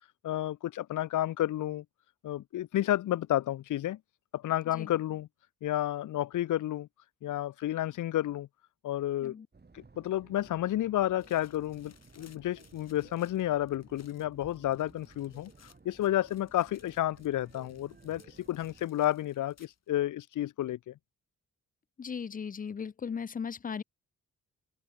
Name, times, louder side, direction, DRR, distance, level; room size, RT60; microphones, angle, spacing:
voice 1, 0.2-1.8 2.2-4.0 4.3-5.3 5.6-6.9 7.2-8.5 8.8-9.4 9.7-15.5 15.8-20.9, left 13 dB, 70° left, 0.7 m, -31 dB
sound 1, 9.5-18.9, right 4 dB, 30° right, 5.5 m, -57 dB
sound 2, 11.2-19.9, left 6 dB, 55° left, 4.5 m, -64 dB
voice 2, 22.0-23.8, left 6 dB, 25° left, 0.5 m, -37 dB
cardioid pair, 75°, 32 cm